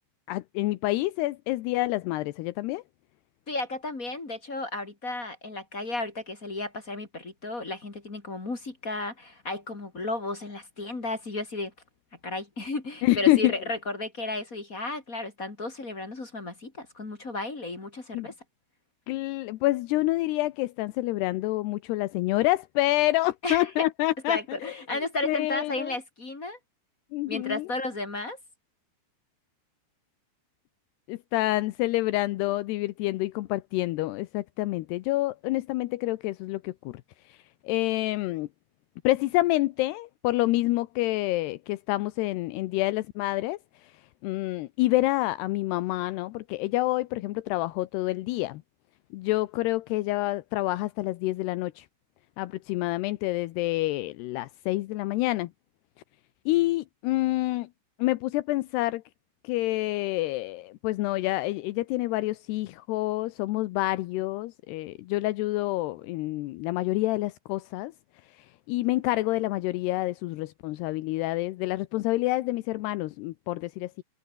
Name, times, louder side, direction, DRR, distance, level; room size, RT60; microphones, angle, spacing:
voice 1, 0.3-2.8 13.0-13.6 18.1-18.3 19.1-25.9 27.1-27.7 31.1-37.0 37.3-37.4 37.6-38.5 39.0-43.9 44.2-48.6 49.1-51.9 52.4-55.5 56.5-57.7 58.0-59.0 59.4-67.9 68.7-74.0, left 18 dB, 80° left, 2.4 m, -27 dB
voice 2, 3.5-11.7 12.2-18.3 23.4-23.9 24.3-26.6 27.3-28.4, left 2 dB, 25° left, 2.1 m, -33 dB
omnidirectional pair, 5.7 m